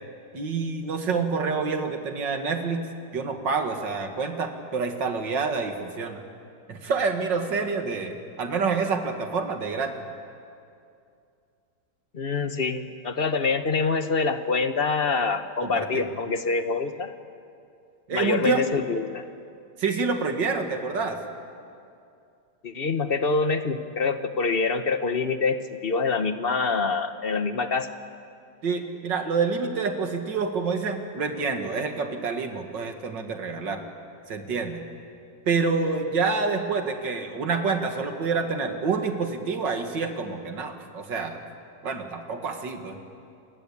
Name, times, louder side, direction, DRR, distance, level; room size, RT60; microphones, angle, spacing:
voice 1, 0.3-2.9 3.1-6.2 6.7-9.9 15.6-16.1 18.1-18.6 19.8-21.2 28.6-33.8 34.3-34.9 35.5-41.4 41.8-43.0, right 4 dB, 75° right, 5 dB, 2.6 m, -27 dB
voice 2, 12.1-17.1 18.1-19.2 22.6-25.6 25.8-27.9, left 4 dB, 40° left, 9 dB, 1.0 m, -25 dB
28.0 x 20.5 x 8.6 m, 2.5 s
omnidirectional pair, 2.0 m